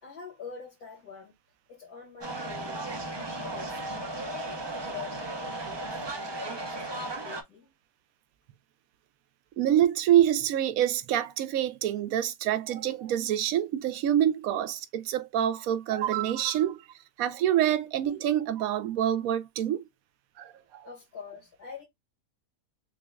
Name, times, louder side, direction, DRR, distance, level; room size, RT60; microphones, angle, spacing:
voice 1, 0.0-1.3 1.7-2.9 3.4-3.8 4.3-7.7 20.8-21.8, left 5 dB, 80° left, 2.3 m, -46 dB
sound 1, 2.2-7.4, right 2 dB, 35° right, 0.4 m, -35 dB
voice 2, 9.6-16.8 17.2-19.8 20.4-20.9, right 11 dB, 75° right, 1.0 m, -26 dB
6.0 x 2.3 x 2.2 m
omnidirectional pair, 1.6 m